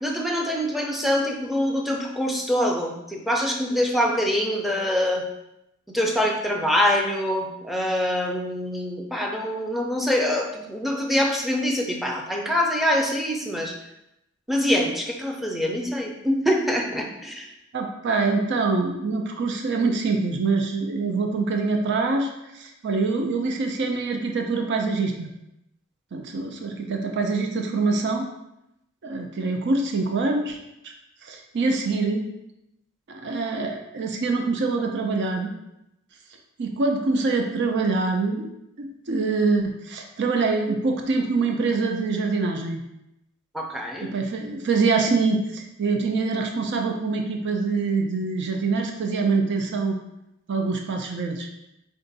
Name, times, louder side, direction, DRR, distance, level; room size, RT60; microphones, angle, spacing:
voice 1, 0.0-5.2 5.9-13.8 14.5-17.5 43.5-44.1, equal, ahead, 0 dB, 0.5 m, -24 dB
voice 2, 17.7-25.3 26.1-28.3 29.0-30.6 30.8-30.9 31.2-32.2 33.1-35.5 36.6-38.5 38.8-42.8 44.0-50.0 50.5-51.5, right 3 dB, 55° right, 3 dB, 0.5 m, -25 dB
4.4 x 2.5 x 3.9 m, 0.85 s
head